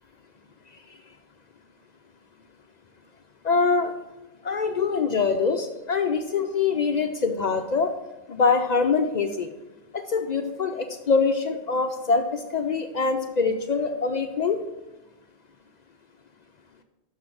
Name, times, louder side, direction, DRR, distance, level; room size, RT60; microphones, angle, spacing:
voice 1, 3.4-3.9 4.4-7.9 8.3-9.5 9.9-14.6, left 4 dB, 60° left, 6 dB, 0.4 m, -24 dB
6.4 x 6.1 x 6.2 m, 1.0 s
omnidirectional pair, 1.3 m